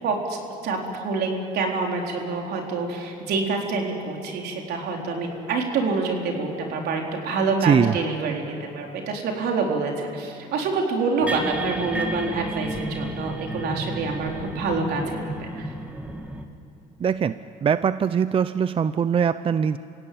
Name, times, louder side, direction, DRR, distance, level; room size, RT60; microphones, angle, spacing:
voice 1, 0.0-1.3 1.5-15.7, right 4 dB, 70° right, 1 dB, 4.1 m, -27 dB
voice 2, 7.6-8.0 17.0-19.8, right 7 dB, 35° right, 13 dB, 0.5 m, -22 dB
sound 1, 11.2-16.4, right 1 dB, 10° right, 2.0 m, -33 dB
27.5 x 17.0 x 8.8 m, 2.9 s
cardioid pair, 110°, 17 cm